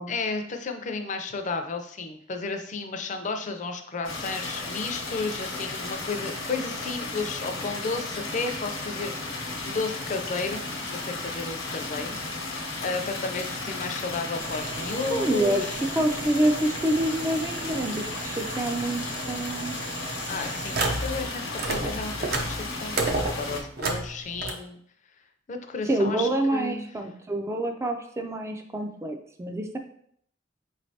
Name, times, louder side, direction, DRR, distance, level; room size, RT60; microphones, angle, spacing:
voice 1, 0.1-15.8 20.3-24.8 25.5-26.9, left 4 dB, 40° left, 6 dB, 0.5 m, -33 dB
sound 1, 4.0-23.6, left 3 dB, 80° left, 0.9 m, -34 dB
sound 2, 14.4-21.3 21.5-24.5, right 3 dB, 55° right, 0.6 m, -33 dB
voice 2, 15.1-15.7 16.0-19.0 19.3-19.8 25.9-29.8, right 1 dB, 15° right, 5 dB, 0.3 m, -27 dB
4.9 x 3.2 x 2.7 m, 0.64 s
head